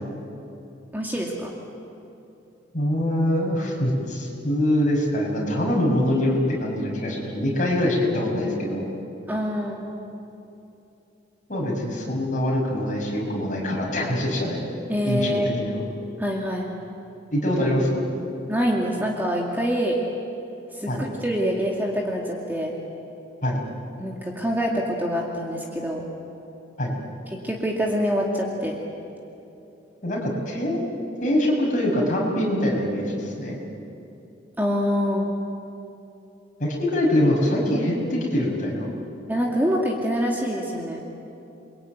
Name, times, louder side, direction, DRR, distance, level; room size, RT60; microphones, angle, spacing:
voice 1, 0.9-1.5 9.3-9.8 14.9-15.5 16.2-16.7 18.5-20.0 20.7-22.8 24.0-26.1 27.3-28.8 34.6-35.3 39.3-41.0, equal, 10° right, -1 dB, 2.3 m, -25 dB
voice 2, 2.7-8.8 11.5-14.6 15.0-15.8 17.3-18.1 20.9-21.1 23.4-23.6 26.8-26.9 30.0-30.8 31.2-33.6 36.6-38.9, left 1 dB, 40° left, -2 dB, 6.3 m, -24 dB
28.5 x 22.5 x 9.4 m, 2.9 s
head